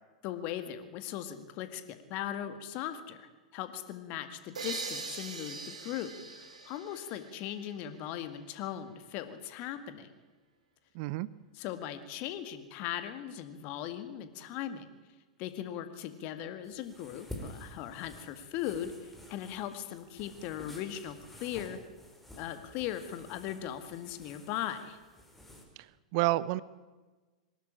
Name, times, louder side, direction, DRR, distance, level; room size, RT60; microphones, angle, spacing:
voice 1, 0.2-10.1 11.6-14.9 15.4-21.8 22.3-25.0, left 11 dB, 40° left, 10 dB, 2.0 m, -39 dB
sound 1, 4.5-8.1, right 4 dB, 70° right, 3.1 m, -42 dB
voice 2, 10.9-11.3 25.8-26.6, right 18 dB, 45° right, 20 dB, 0.7 m, -30 dB
sound 2, 16.6-25.6, left 1 dB, 5° left, 4.6 m, -50 dB
23.0 x 12.5 x 9.9 m, 1.3 s
figure-of-eight pair, 95°, 4 cm